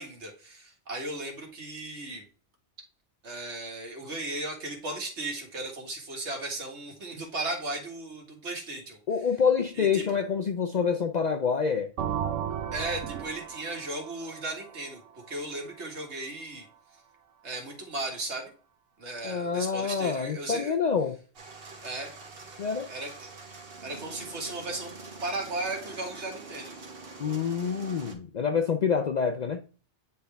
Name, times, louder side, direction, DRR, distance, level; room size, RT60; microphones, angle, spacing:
voice 1, 0.0-2.3 3.2-9.0 9.8-10.2 12.7-15.0 15.3-16.7 17.4-18.5 19.0-20.8 21.8-22.1 22.9-23.3 23.8-24.9 25.2-26.7, right 2 dB, 70° right, 2.0 m, -36 dB
voice 2, 9.1-11.9 19.2-21.2 22.6-22.9 27.2-29.6, left 6 dB, 55° left, 0.5 m, -27 dB
sound 1, 12.0-15.7, right 9 dB, 85° right, 1.0 m, -35 dB
sound 2, 21.3-28.1, right 3 dB, 55° right, 1.4 m, -45 dB
9.4 x 3.6 x 3.4 m
omnidirectional pair, 1.2 m